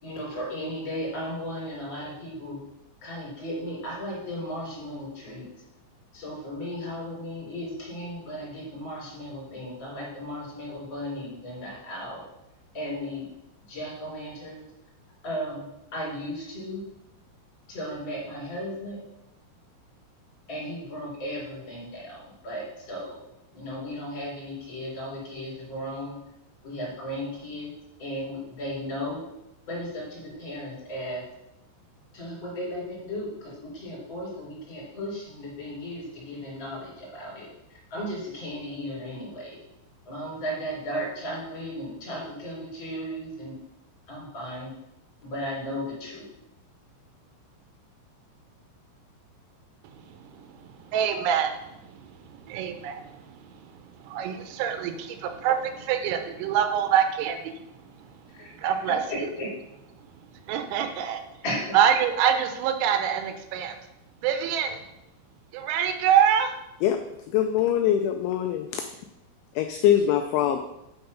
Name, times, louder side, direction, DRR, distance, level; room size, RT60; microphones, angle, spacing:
voice 1, 0.0-2.6 3.0-5.4 6.1-12.2 12.7-13.2 13.7-14.6 15.2-15.6 15.9-16.8 17.7-19.0 20.5-22.2 22.4-23.2 23.5-26.1 26.6-27.7 28.0-29.2 29.7-31.2 32.1-37.5 37.9-39.6 40.1-43.5 44.1-44.7 45.2-46.2 58.4-58.5 59.1-59.5 61.4-61.8, equal, 35° left, -5 dB, 4.0 m, -35 dB
voice 2, 49.8-53.7 54.0-57.6 58.6-59.3 60.5-61.2 61.7-63.8 64.2-64.8 65.5-66.5, right 8 dB, 85° right, 7 dB, 3.5 m, -26 dB
voice 3, 67.3-68.8 69.6-70.6, left 10 dB, 90° left, 6 dB, 2.6 m, -23 dB
9.2 x 4.4 x 5.5 m, 0.86 s
omnidirectional pair, 5.9 m